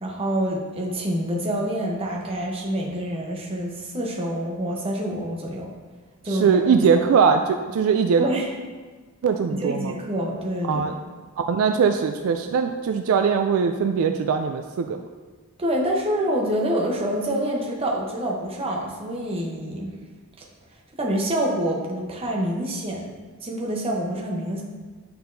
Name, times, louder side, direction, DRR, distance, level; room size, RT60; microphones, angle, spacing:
voice 1, 0.0-5.7 6.2-6.9 8.2-8.5 9.5-11.0 15.6-19.9 21.0-24.6, right 1 dB, 25° right, -2 dB, 0.9 m, -27 dB
voice 2, 6.3-8.2 9.2-9.9 10.6-10.9 11.5-15.0, right 6 dB, 65° right, 6 dB, 0.3 m, -21 dB
8.4 x 4.3 x 2.7 m, 1.4 s
head